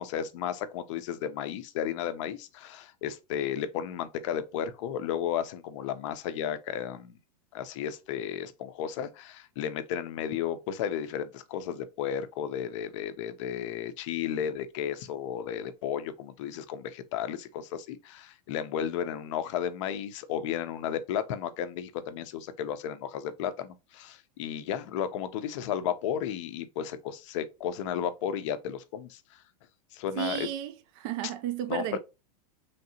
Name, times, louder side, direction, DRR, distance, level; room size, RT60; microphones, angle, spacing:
voice 1, 0.0-7.2 7.5-29.4 29.9-30.5 31.2-31.3 31.7-32.0, left 9 dB, 50° left, 0.5 m, -33 dB
voice 2, 30.2-32.0, right 12 dB, 35° right, 0.4 m, -33 dB
3.2 x 2.7 x 2.7 m
supercardioid pair, 160°, 20 cm